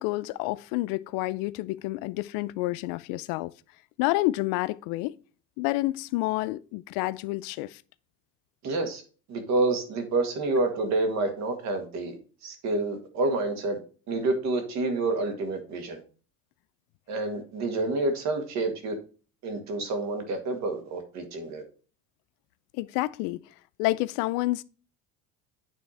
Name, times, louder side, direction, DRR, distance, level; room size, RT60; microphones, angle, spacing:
voice 1, 0.0-3.5 4.0-5.1 5.6-7.8 22.7-23.4 23.8-24.6, left 19 dB, 80° left, 0.5 m, -29 dB
voice 2, 8.6-9.0 9.3-12.2 12.4-13.8 14.1-16.0 17.1-19.0 19.4-21.6, right 2 dB, 55° right, 1.8 m, -28 dB
9.4 x 3.4 x 4.2 m
cardioid pair, 135°, 34 cm